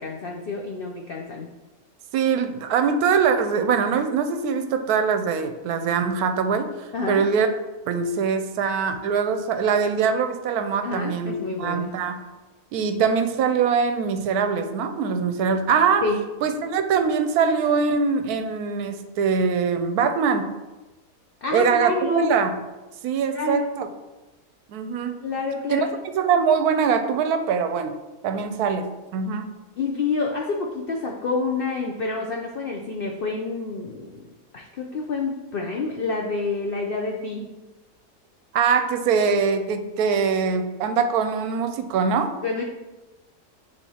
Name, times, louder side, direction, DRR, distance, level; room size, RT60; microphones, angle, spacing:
voice 1, 0.0-1.5 6.9-7.2 10.8-11.9 16.0-16.2 21.4-22.3 23.3-23.7 25.2-25.8 29.8-34.2 34.5-37.5 42.4-42.6, left 3 dB, 70° left, 1 dB, 0.5 m, -28 dB
voice 2, 2.1-6.7 7.1-7.5 7.9-12.2 12.7-16.0 16.4-20.5 21.5-22.6 23.0-23.9 24.7-25.2 25.7-25.9 26.1-27.9 28.2-29.5 38.5-42.3, right 6 dB, 75° right, 8 dB, 1.0 m, -23 dB
9.9 x 3.4 x 2.8 m, 1.1 s
omnidirectional pair, 1.7 m